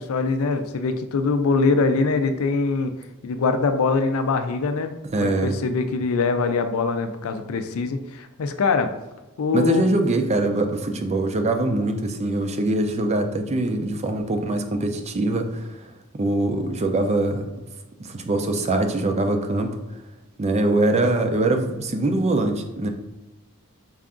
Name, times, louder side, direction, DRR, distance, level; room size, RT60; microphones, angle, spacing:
voice 1, 0.0-2.9 3.2-8.9 9.4-9.8, left 4 dB, 70° left, 8 dB, 0.4 m, -23 dB
voice 2, 5.1-5.6 9.5-15.7 16.1-17.4 18.0-19.7 20.4-22.9, right 2 dB, 30° right, 5 dB, 0.5 m, -23 dB
5.5 x 2.5 x 3.6 m, 1.1 s
head